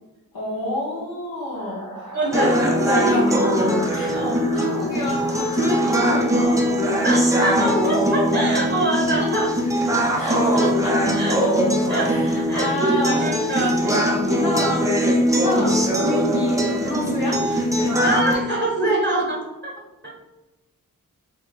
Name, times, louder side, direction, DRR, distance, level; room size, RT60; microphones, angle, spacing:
voice 1, 0.3-3.4 3.9-6.6 10.1-11.0 12.0-13.3 14.2-15.0 15.3-17.8 18.8-18.9, left 1 dB, 85° left, -7 dB, 1.1 m, -28 dB
sound 1, 1.5-7.1, equal, 15° left, 1.0 m, -37 dB
voice 2, 2.1-3.3 4.1-4.4 7.0-9.5 11.1-11.5 11.9-12.1 12.5-14.0 18.0-19.8 20.0-20.1, right 1 dB, 35° right, -3 dB, 0.9 m, -24 dB
sound 2, 2.3-18.3, equal, 10° right, 0.5 m, -21 dB
2.8 x 2.3 x 3.9 m, 1.0 s
wide cardioid pair, 60°, 34 cm